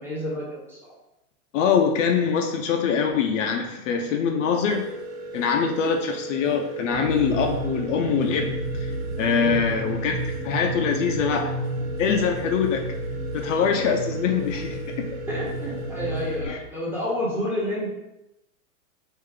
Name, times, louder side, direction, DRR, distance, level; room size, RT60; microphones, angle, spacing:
voice 1, 0.0-0.8 9.3-9.8 15.2-17.9, left 1 dB, 5° right, -7 dB, 0.7 m, -29 dB
voice 2, 1.5-4.9 5.3-8.6 9.2-10.2 10.4-11.5 12.0-12.8 13.3-15.1 16.4-16.6, left 6 dB, 55° left, 3 dB, 0.5 m, -23 dB
sound 1, 4.7-16.4, right 1 dB, 40° right, 0.7 m, -37 dB
sound 2, 6.9-16.5, right 2 dB, 65° right, 0.9 m, -32 dB
3.2 x 2.5 x 3.7 m, 0.91 s
hypercardioid pair, 135°, 45 cm